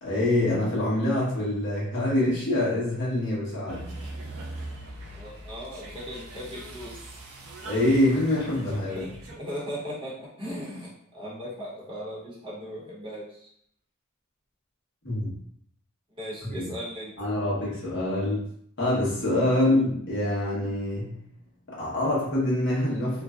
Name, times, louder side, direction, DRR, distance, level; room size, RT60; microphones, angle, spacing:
voice 1, 0.0-3.9 7.6-9.0 15.0-15.3 16.5-16.6 17.2-18.4 18.8-21.2 21.7-23.2, left 1 dB, 55° left, -6 dB, 1.0 m, -25 dB
sound 1, 3.7-9.4, right 1 dB, 85° right, 0.5 m, -41 dB
voice 2, 5.1-6.9 8.9-13.5 16.2-17.1, equal, 25° right, -6 dB, 0.8 m, -38 dB
2.5 x 2.1 x 2.3 m, 0.68 s
head